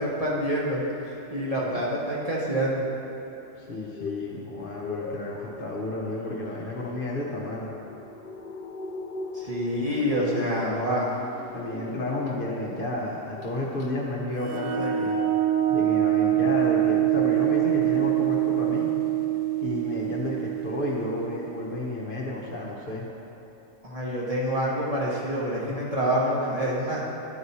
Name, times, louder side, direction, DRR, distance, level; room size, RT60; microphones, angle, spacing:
voice 1, 0.0-2.9 9.3-11.1 23.8-27.0, equal, 30° right, -6 dB, 0.9 m, -27 dB
sound 1, 3.7-12.9 13.2-13.5 13.8-13.9, left 3 dB, 65° left, 0.5 m, -40 dB
voice 2, 3.7-7.7 10.1-10.5 11.5-15.2 15.7-18.9 19.6-23.1, left 2 dB, 50° left, -4 dB, 0.9 m, -32 dB
sound 2, 14.4-21.9, right 12 dB, 75° right, 0.4 m, -25 dB
10.5 x 4.8 x 4.1 m, 3.0 s
omnidirectional pair, 1.4 m